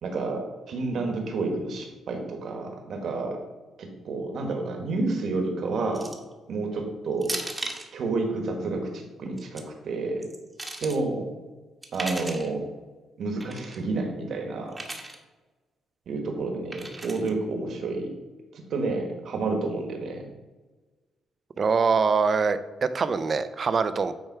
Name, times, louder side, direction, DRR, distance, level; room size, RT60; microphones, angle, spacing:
voice 1, 0.0-3.4 3.8-6.1 6.5-7.4 7.9-10.2 10.8-11.3 11.9-12.6 13.2-14.7 16.1-18.1 18.5-20.2, right 3 dB, 65° right, 3 dB, 1.4 m, -30 dB
sound 1, 5.9-6.3 7.2-7.9 9.2-9.6 10.2-11.0 11.8-12.5 13.4-13.8 14.7-15.2 16.7-17.3, right 2 dB, 15° right, 1.0 m, -36 dB
voice 2, 21.6-24.1, right 5 dB, 40° right, 12 dB, 0.5 m, -24 dB
8.8 x 3.4 x 4.7 m, 1.2 s
cardioid pair, 90°, 0 cm